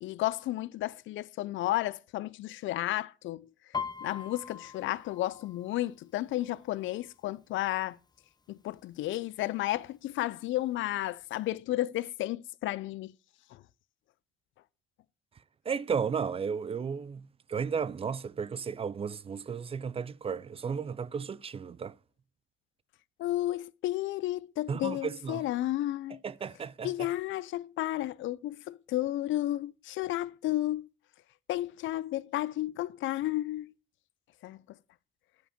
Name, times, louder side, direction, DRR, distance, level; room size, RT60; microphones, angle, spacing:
voice 1, 0.0-3.5 4.0-8.0 8.5-13.1 13.5-13.6 23.2-26.2 26.8-30.9 31.5-33.7 34.4-34.6, left 15 dB, 75° left, 0.4 m, -32 dB
Piano, 3.7-7.4 7.7-8.1 8.5-9.1 9.7-9.8 10.0-11.1 11.4-11.5, left 6 dB, 20° left, 0.7 m, -41 dB
voice 2, 15.7-21.9 24.7-25.5 26.2-27.1, right 6 dB, 30° right, 0.3 m, -34 dB
10.0 x 5.0 x 5.0 m
cardioid pair, 90°, 20 cm